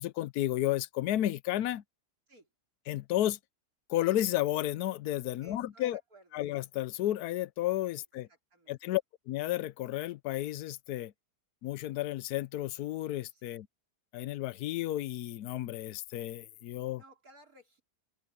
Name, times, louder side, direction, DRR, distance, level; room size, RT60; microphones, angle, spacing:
voice 1, 0.0-1.8 2.9-3.4 3.9-6.0 6.3-8.3 8.7-11.1 11.6-13.7 14.1-17.0, left 14 dB, 80° left, 1.2 m, -32 dB
voice 2, 5.4-6.5 8.5-8.8 13.3-13.6 17.0-17.8, right 1 dB, 65° right, 5.0 m, -58 dB
open air
omnidirectional pair, 1.6 m